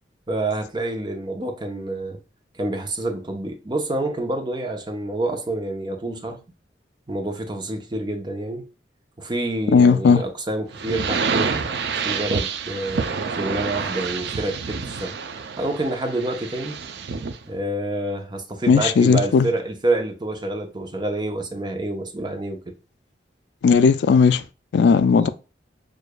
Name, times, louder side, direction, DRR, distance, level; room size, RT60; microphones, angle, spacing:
voice 1, 0.3-2.2 2.5-6.4 7.1-8.7 9.2-11.6 12.0-15.2 15.6-16.8 17.4-22.6 25.2-25.3, right 2 dB, 25° right, 0.7 m, -27 dB
voice 2, 9.7-10.2 18.7-19.5 23.6-24.4 24.7-25.3, left 5 dB, 70° left, 0.3 m, -16 dB
sound 1, 10.7-17.4, right 5 dB, 65° right, 0.4 m, -28 dB
6.5 x 2.5 x 2.2 m
head